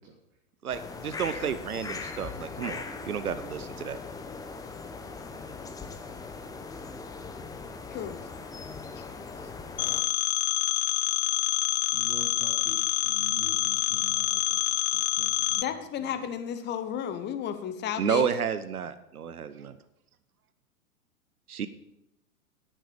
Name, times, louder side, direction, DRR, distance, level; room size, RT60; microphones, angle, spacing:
sound 1, 0.7-10.0, left 4 dB, 10° left, 0.8 m, -40 dB
voice 1, 0.7-4.0 18.0-19.7 21.5-21.7, right 7 dB, 80° right, 13 dB, 0.8 m, -31 dB
Telephone, 9.8-15.6, left 18 dB, 50° left, 0.6 m, -27 dB
voice 2, 11.9-14.6 14.9-15.7 15.9-16.2, right 5 dB, 25° right, 1 dB, 1.5 m, -46 dB
voice 3, 15.6-18.3, left 9 dB, 25° left, 10 dB, 1.1 m, -33 dB
11.0 x 10.0 x 4.9 m, 0.85 s
figure-of-eight pair, 105°, 43 cm